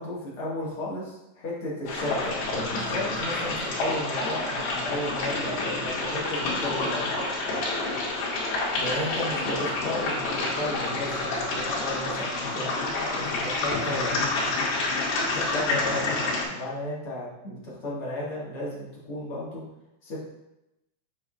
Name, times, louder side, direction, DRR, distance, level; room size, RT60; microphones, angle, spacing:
voice 1, 0.0-7.1 8.8-12.7 13.1-14.1 15.3-16.2 16.5-19.6 20.0-20.2, left 1 dB, 45° left, -7 dB, 1.9 m, -34 dB
sound 1, 1.9-16.4, left 2 dB, 90° left, 3.9 m, -28 dB
9.4 x 6.3 x 2.5 m, 0.89 s
omnidirectional pair, 4.8 m